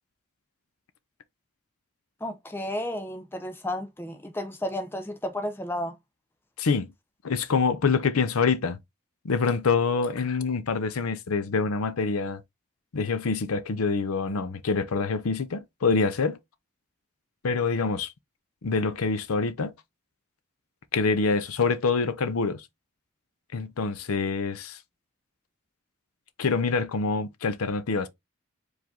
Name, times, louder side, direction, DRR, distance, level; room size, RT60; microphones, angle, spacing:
voice 1, 2.2-6.0, left 1 dB, 10° left, 0.5 m, -32 dB
voice 2, 7.2-8.8 9.2-12.4 12.9-16.4 17.4-18.1 18.6-19.7 20.9-22.7 23.5-24.8 26.4-28.1, left 4 dB, 90° left, 0.6 m, -26 dB
4.8 x 2.6 x 3.6 m
head